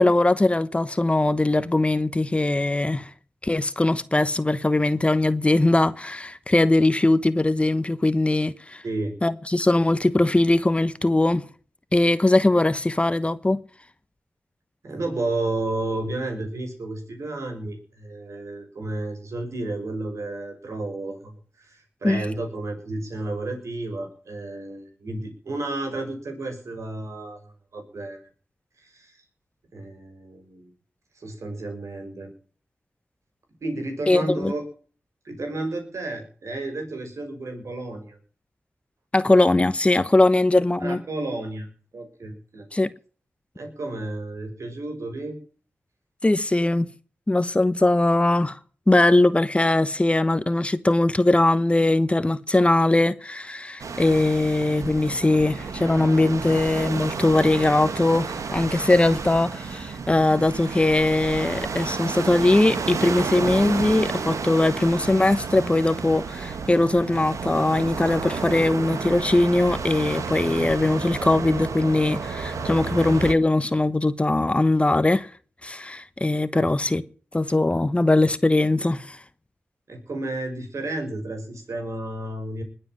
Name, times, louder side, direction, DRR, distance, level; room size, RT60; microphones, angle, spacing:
voice 1, 0.0-3.1 3.4-8.8 9.2-11.4 11.9-13.6 22.0-22.2 34.1-34.5 39.1-41.0 42.7-42.9 46.2-46.9 47.3-48.6 48.9-75.3 75.6-77.0 77.3-79.2, left 2 dB, 20° left, 1.1 m, -21 dB
voice 2, 8.8-9.2 14.8-28.2 28.8-29.2 29.7-30.7 31.2-32.3 33.6-34.6 35.2-38.2 40.8-41.7 41.9-42.7 43.5-45.4 72.8-73.0 76.5-76.7 79.9-82.6, right 2 dB, 70° right, 5.9 m, -32 dB
sound 1, 53.8-73.3, right 5 dB, 85° right, 1.7 m, -31 dB
21.0 x 7.8 x 7.5 m
wide cardioid pair, 80°, 5 cm